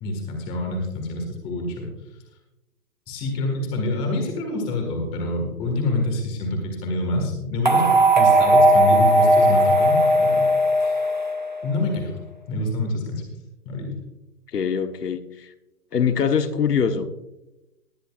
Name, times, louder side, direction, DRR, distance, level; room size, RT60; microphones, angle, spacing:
voice 1, 0.0-1.9 3.1-7.9 8.1-10.5 10.8-11.0 11.6-12.1 12.5-13.2 13.6-14.0, left 2 dB, 10° left, 2 dB, 1.7 m, -26 dB
sound 1, 7.7-11.9, right 1 dB, 35° right, 0.4 m, -17 dB
voice 2, 14.5-15.5 15.9-17.2, left 7 dB, 85° left, 8 dB, 1.3 m, -23 dB
19.5 x 9.8 x 2.4 m, 0.94 s
hypercardioid pair, 165°, 46 cm